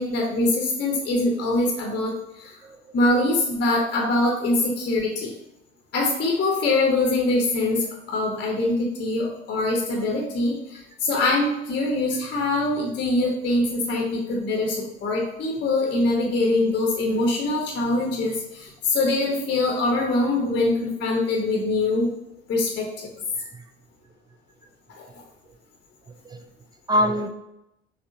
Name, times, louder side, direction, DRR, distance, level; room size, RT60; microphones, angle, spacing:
voice 1, 0.0-2.6 2.9-5.3 5.9-22.1 22.5-23.1 25.0-25.1, left 2 dB, 35° left, -1 dB, 0.8 m, -23 dB
voice 2, 2.6-3.0 12.1-12.3 13.2-13.3 20.1-20.2 23.3-23.6 26.1-26.4 26.9-27.3, equal, 15° right, 6 dB, 0.4 m, -27 dB
6.0 x 2.1 x 2.6 m, 0.89 s
figure-of-eight pair, 55°, 32 cm